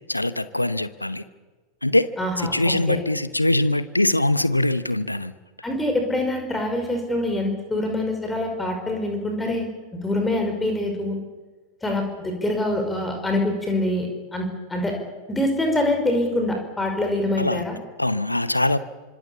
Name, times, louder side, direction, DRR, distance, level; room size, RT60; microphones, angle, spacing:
voice 1, 0.1-1.2 1.8-2.1 2.5-5.3 17.4-17.6 18.0-18.8, left 1 dB, 85° left, 14 dB, 0.9 m, -22 dB
voice 2, 2.2-3.0 5.6-11.2 11.8-14.9 15.3-17.8, left 1 dB, 10° left, 4 dB, 5.0 m, -25 dB
26.0 x 25.5 x 7.0 m, 1.4 s
figure-of-eight pair, 90°, 0 cm